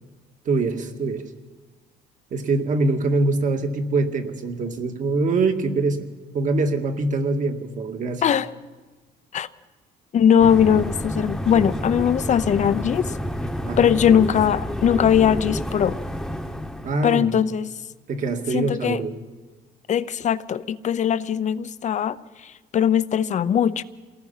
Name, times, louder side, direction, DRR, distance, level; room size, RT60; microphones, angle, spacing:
voice 1, 0.5-1.3 2.3-6.1 6.3-8.2 13.6-14.0 16.8-17.4 18.1-19.1, right 3 dB, 50° right, 5 dB, 2.2 m, -24 dB
voice 2, 10.1-13.1 13.8-16.0 17.0-17.7 18.5-19.0 19.9-23.8, left 8 dB, 45° left, 15 dB, 0.8 m, -20 dB
sound 1, 10.4-16.9, equal, ahead, 1.3 m, -29 dB
27.5 x 18.5 x 5.8 m, 1.3 s
cardioid pair, 110°, 17 cm